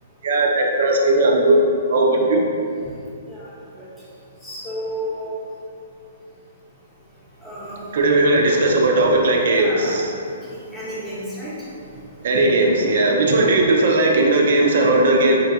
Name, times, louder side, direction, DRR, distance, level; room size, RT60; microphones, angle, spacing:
voice 1, 0.2-1.6 1.9-2.4 7.9-10.1 12.2-15.4, right 2 dB, 65° right, 1 dB, 0.5 m, -17 dB
voice 2, 4.4-5.3 7.4-7.8 9.5-10.0 10.5-11.6, equal, 5° left, -9 dB, 0.8 m, -31 dB
3.8 x 2.2 x 2.7 m, 2.5 s
hypercardioid pair, 145°, 0 cm